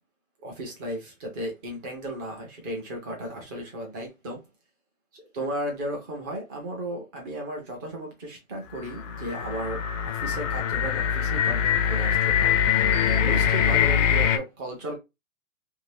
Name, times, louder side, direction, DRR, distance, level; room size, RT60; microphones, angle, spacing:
voice 1, 0.4-4.4 5.1-12.6 13.1-14.9, right 1 dB, 15° right, 0.4 m, -35 dB
sound 1, 8.8-14.4, left 8 dB, 60° left, 0.6 m, -23 dB
2.7 x 2.5 x 3.3 m
hypercardioid pair, 150°, 43 cm